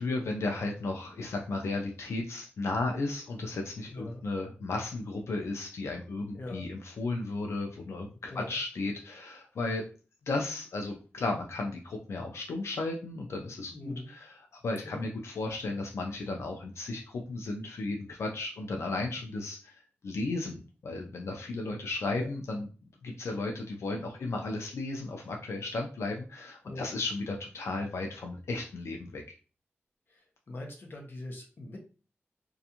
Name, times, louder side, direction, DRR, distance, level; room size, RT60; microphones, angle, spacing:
voice 1, 0.0-9.8 10.3-22.7 23.0-29.2, left 2 dB, 90° left, 2 dB, 0.4 m, -34 dB
voice 2, 3.9-4.2 6.3-6.7 8.3-8.6 13.7-14.1 14.8-15.1 22.1-22.3 26.6-26.9 30.1-31.8, left 2 dB, 50° left, 1 dB, 0.7 m, -42 dB
2.5 x 2.3 x 2.8 m, 0.36 s
wide cardioid pair, 130°, 5 cm